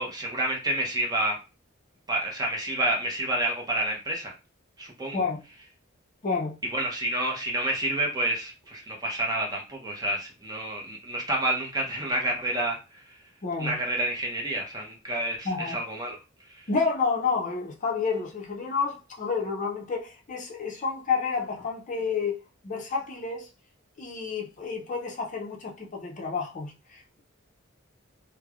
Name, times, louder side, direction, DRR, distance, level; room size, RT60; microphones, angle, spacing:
voice 1, 0.0-1.4 2.1-4.3 4.8-5.2 6.7-12.8 13.6-16.2 16.5-16.6, right 1 dB, 20° right, 0.6 m, -29 dB
voice 2, 6.2-6.5 13.4-13.8 15.4-15.8 16.7-23.5 24.0-27.2, left 5 dB, 40° left, 0.5 m, -30 dB
3.1 x 2.0 x 2.3 m
head